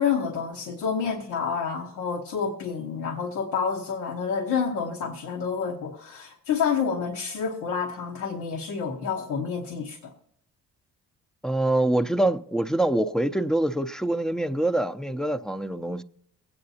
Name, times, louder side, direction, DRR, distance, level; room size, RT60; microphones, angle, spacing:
voice 1, 0.0-10.1, left 6 dB, 85° left, 1.2 m, -28 dB
voice 2, 11.4-16.0, right 1 dB, ahead, 0.5 m, -25 dB
22.5 x 8.7 x 2.8 m
cardioid pair, 90°, 30 cm